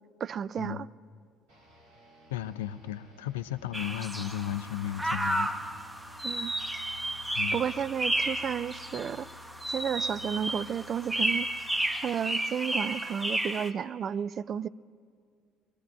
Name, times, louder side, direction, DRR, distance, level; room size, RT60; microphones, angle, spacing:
voice 1, 0.2-0.9 6.2-6.5 7.5-9.3 9.7-11.5 12.0-14.7, right 8 dB, 40° right, 0.3 m, -32 dB
sound 1, 1.5-13.7, left 4 dB, 70° right, 4.0 m, -54 dB
voice 2, 2.3-5.5 7.4-7.6, left 11 dB, 70° left, 0.4 m, -35 dB
sound 2, 3.7-13.7, right 1 dB, 5° right, 1.0 m, -32 dB
23.5 x 19.5 x 2.5 m
figure-of-eight pair, 55°, 0 cm